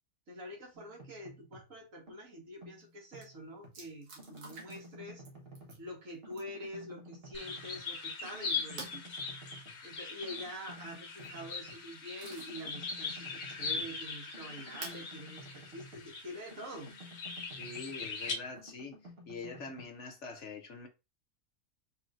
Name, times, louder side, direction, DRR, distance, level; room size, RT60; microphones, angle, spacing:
voice 1, 0.3-5.2 5.8-9.1 9.8-16.9, equal, 60° right, 2.0 m, -46 dB
sound 1, 0.7-1.7 2.1-3.8 4.2-5.9 6.2-8.0 8.2-9.8 10.2-11.8 12.2-16.2 16.5-19.8, right 1 dB, 45° right, 1.3 m, -53 dB
sound 2, 2.8-2.9 3.1-3.3 3.7-4.9 5.2-5.8 6.3-6.7 8.8-9.0 10.9-11.3 11.8-12.7 13.2-13.3 14.8-15.1 16.2-16.3 18.3-18.8, right 3 dB, 85° right, 1.9 m, -48 dB
sound 3, 7.3-18.3, left 5 dB, 85° left, 1.6 m, -41 dB
voice 2, 17.6-19.0 19.3-20.9, left 4 dB, 55° left, 1.1 m, -44 dB
4.8 x 4.3 x 2.5 m
omnidirectional pair, 1.6 m